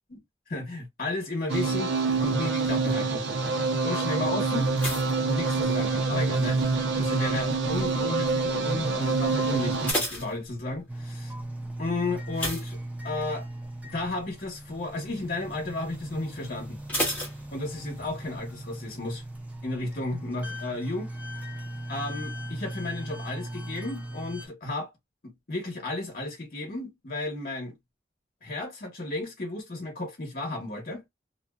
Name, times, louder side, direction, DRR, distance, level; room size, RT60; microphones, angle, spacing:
voice 1, 0.5-1.9 2.2-3.2 3.8-4.7 5.2-11.3 11.8-12.8 13.0-13.5 13.8-16.8 17.5-19.2 19.6-21.1 21.9-24.9 25.2-27.8 28.4-31.0, left 2 dB, 55° left, 0.9 m, -33 dB
sound 1, 1.5-9.9, right 4 dB, 75° right, 0.6 m, -26 dB
sound 2, 4.7-6.2 6.5-7.0 7.6-8.0 8.3-8.4 8.8-8.9 9.5-11.0 12.3-13.5 13.8-14.1 14.5-14.6 16.9-18.1 18.4-18.5, left 1 dB, 10° left, 1.0 m, -33 dB
sound 3, 10.9-24.5, right 1 dB, 10° right, 0.4 m, -38 dB
2.5 x 2.2 x 2.2 m
head